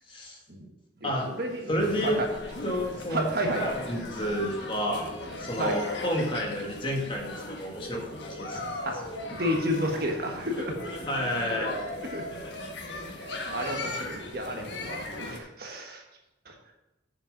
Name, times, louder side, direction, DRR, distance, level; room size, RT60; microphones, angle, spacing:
voice 1, 0.1-0.4 1.0-1.3 1.7-2.2 2.6-3.3 3.5-5.1 5.4-8.0 8.3-8.6 11.1-12.0, equal, 30° left, 0 dB, 1.6 m, -30 dB
voice 2, 1.0-1.8 2.0-2.3 3.1-3.6 5.6-5.8 8.8-9.0 9.4-10.8 11.6-11.7 12.0-12.3 13.2-16.0 16.4-16.5, equal, 55° right, 2 dB, 1.4 m, -31 dB
Boat Water vehicle, 1.1-6.1, equal, 40° right, 2.8 m, -48 dB
sound 1, 1.8-15.4, left 2 dB, 70° left, 1.4 m, -38 dB
7.3 x 6.7 x 5.2 m, 0.97 s
head